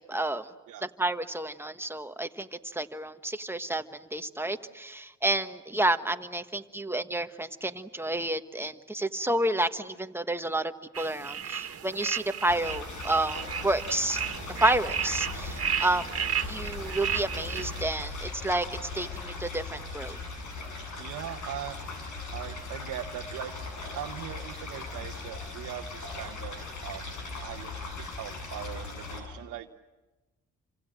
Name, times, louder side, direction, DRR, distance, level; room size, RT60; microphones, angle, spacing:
voice 1, 0.1-0.5 0.8-14.2 14.6-16.1 16.5-18.6 18.9-20.2, right 1 dB, 10° right, 8 dB, 1.4 m, -30 dB
sound 1, 10.9-17.8, right 8 dB, 50° right, 2.0 m, -34 dB
sound 2, 12.5-29.2, left 3 dB, 75° left, 7.9 m, -39 dB
voice 2, 21.0-21.8 22.3-23.5 23.9-27.8 28.2-29.7, right 11 dB, 85° right, 1 dB, 1.3 m, -40 dB
28.5 x 26.0 x 7.7 m, 1.1 s
cardioid pair, 90°, 30 cm